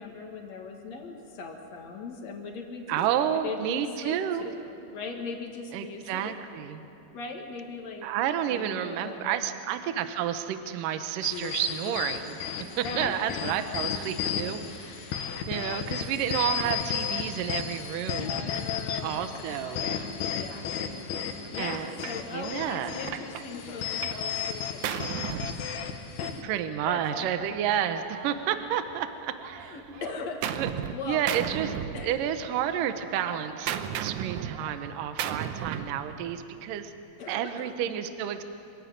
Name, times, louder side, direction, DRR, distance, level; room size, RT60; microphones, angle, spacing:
voice 1, 0.0-3.1 3.4-6.3 7.1-8.1 8.5-9.4 12.8-13.2 13.6-13.7 15.5-15.9 18.2-19.2 19.6-20.8 21.5-25.5 26.2-26.5 26.9-27.3 29.6-30.4 30.9-31.3 31.9-32.3 37.2-37.9, left 4 dB, 50° left, 3 dB, 2.6 m, -40 dB
voice 2, 2.9-4.5 5.7-6.8 8.0-12.4 12.8-18.5 19.0-20.0 21.6-21.9 22.3-22.9 26.4-29.7 30.6-30.7 31.1-31.8 32.0-36.9 37.3-38.5, right 10 dB, 70° right, 9 dB, 2.3 m, -30 dB
sound 1, 11.2-26.4, left 8 dB, 75° left, 3.0 m, -34 dB
Gunshot gunfire, 22.0-22.2 22.8-24.3 24.5-26.3 27.2-29.0 29.4-31.0 31.3-32.5 32.8-36.0, right 9 dB, 85° right, 1.7 m, -36 dB
25.5 x 15.5 x 9.4 m, 2.8 s
omnidirectional pair, 4.6 m